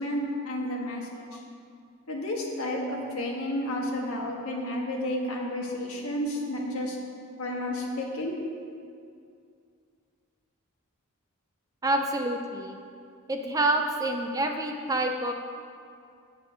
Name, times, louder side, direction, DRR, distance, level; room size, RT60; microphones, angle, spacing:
voice 1, 0.0-1.4 2.1-7.0 7.4-8.4, left 1 dB, 70° left, -1 dB, 1.6 m, -31 dB
voice 2, 11.8-12.8 13.3-15.3, right 1 dB, 15° right, 4 dB, 0.5 m, -27 dB
8.5 x 8.2 x 5.1 m, 2.3 s
head